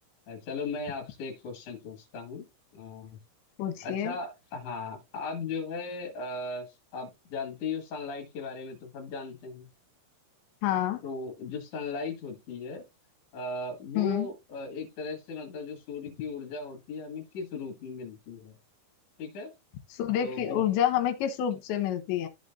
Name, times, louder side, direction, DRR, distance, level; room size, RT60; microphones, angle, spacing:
voice 1, 0.3-2.5 2.7-3.2 3.8-9.7 11.0-12.9 13.3-18.6 19.2-19.5 20.2-20.6, left 4 dB, 50° left, 2.8 m, -37 dB
voice 2, 3.6-4.2 10.6-11.0 14.0-14.3 19.9-22.3, left 10 dB, 75° left, 3.0 m, -28 dB
14.0 x 5.1 x 2.6 m
omnidirectional pair, 5.8 m